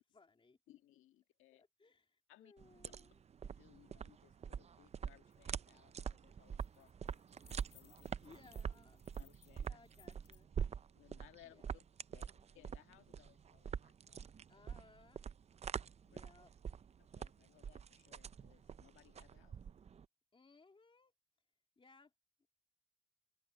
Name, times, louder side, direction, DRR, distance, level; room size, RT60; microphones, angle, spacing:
voice 1, 0.1-0.6 1.5-3.1 8.2-9.0 9.6-10.8 11.4-11.8 12.1-12.5 14.5-15.2 16.0-16.5 20.3-21.1 21.8-22.1, left 4 dB, 25° left, 3.2 m, -65 dB
voice 2, 0.7-1.6 2.3-2.5 2.8-3.0 3.4-8.1 9.2-9.7 10.9-11.8 12.1-12.3 12.5-14.4 16.1-16.2 17.0-19.6, left 14 dB, 90° left, 1.8 m, -65 dB
sound 1, 2.6-20.1, right 7 dB, 35° right, 0.4 m, -45 dB
sound 2, 5.3-5.4 5.7-5.9 6.3-10.4, left 11 dB, 60° left, 6.0 m, -68 dB
open air
cardioid pair, 90°, 20 cm